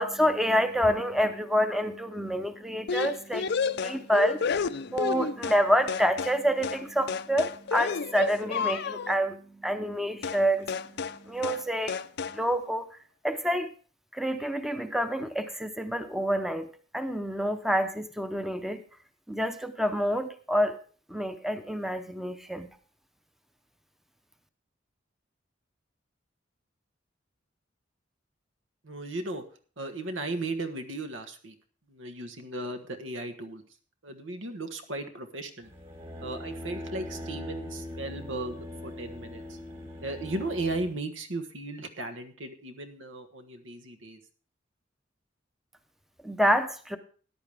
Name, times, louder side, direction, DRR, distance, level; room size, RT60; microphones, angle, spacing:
voice 1, 0.0-10.7 11.2-12.0 12.3-12.9 13.2-13.7 14.1-16.7 16.9-18.8 19.3-20.8 21.1-22.7 46.2-47.0, equal, ahead, 9 dB, 0.7 m, -28 dB
sound 1, 2.9-5.6 5.9-6.4 6.6-6.8 7.1-9.2 10.2-10.4 10.7-11.2 11.4-11.6 11.9-12.4, left 5 dB, 60° left, 0.5 m, -31 dB
voice 2, 28.8-29.5 29.8-31.5 31.9-33.6 34.0-35.7 36.2-39.6 40.0-44.2, right 2 dB, 85° right, 7 dB, 1.5 m, -36 dB
sound 2, 35.6-40.9, left 1 dB, 35° right, 2.9 m, -41 dB
14.0 x 10.0 x 3.5 m, 0.42 s
head